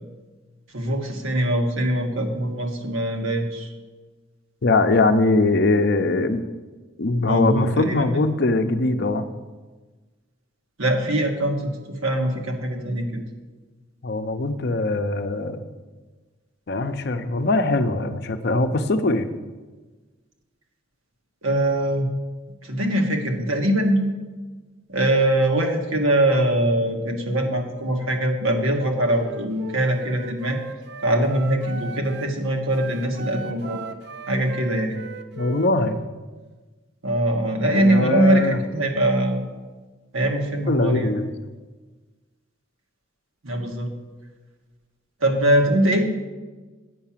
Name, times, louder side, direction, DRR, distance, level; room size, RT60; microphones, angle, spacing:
voice 1, 0.7-3.7 7.3-8.1 10.8-13.2 21.4-22.1 22.6-24.0 24.9-30.6 31.0-33.8 34.3-35.0 37.0-39.5 40.1-41.1 43.4-43.9 45.2-46.0, right 1 dB, 85° right, 2 dB, 1.5 m, -22 dB
voice 2, 4.6-6.4 7.0-9.2 14.0-15.7 16.7-19.3 35.3-36.0 37.7-38.6 40.7-41.3, left 2 dB, 55° left, 8 dB, 0.6 m, -21 dB
Wind instrument woodwind instrument, 29.1-32.4 32.7-36.1, right 3 dB, 55° right, 0.5 m, -38 dB
9.2 x 5.8 x 7.3 m, 1.3 s
head